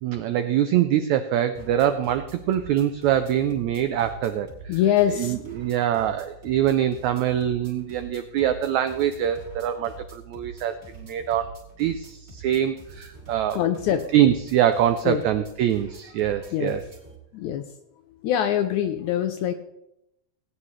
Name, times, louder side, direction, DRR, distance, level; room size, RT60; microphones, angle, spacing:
voice 1, 0.0-4.8 5.1-11.5 11.8-13.6 14.1-16.8, right 10 dB, 85° right, 9 dB, 1.6 m, -24 dB
sound 1, 1.5-17.2, right 4 dB, 30° right, 2.9 m, -45 dB
voice 2, 4.7-5.4 13.5-14.1 15.1-15.2 16.5-16.7 17.3-17.6 18.2-19.5, left 10 dB, 80° left, 8 dB, 1.8 m, -23 dB
18.0 x 9.6 x 3.2 m, 0.83 s
omnidirectional pair, 3.9 m